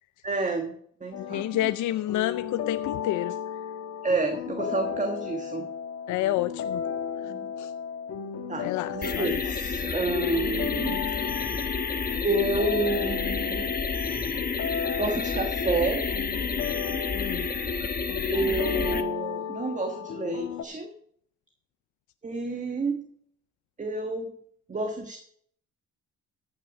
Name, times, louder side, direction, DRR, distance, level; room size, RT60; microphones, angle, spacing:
voice 1, 0.2-0.7 1.0-1.7 4.0-5.7 7.2-7.5 8.5-11.0 12.2-13.7 15.0-16.1 18.3-20.9 22.2-23.0 23.8-24.3 24.7-25.2, right 3 dB, 25° right, 5 dB, 1.3 m, -29 dB
sound 1, 1.1-20.6, left 8 dB, 60° left, 1.3 m, -34 dB
voice 2, 1.3-3.3 6.1-6.8 7.6-7.7 8.6-9.3 17.1-17.5, left 14 dB, 80° left, 12 dB, 0.5 m, -29 dB
sound 2, 9.0-19.0, left 4 dB, 30° left, 1.2 m, -30 dB
14.5 x 6.0 x 6.2 m, 0.66 s
cardioid pair, 90°, 30 cm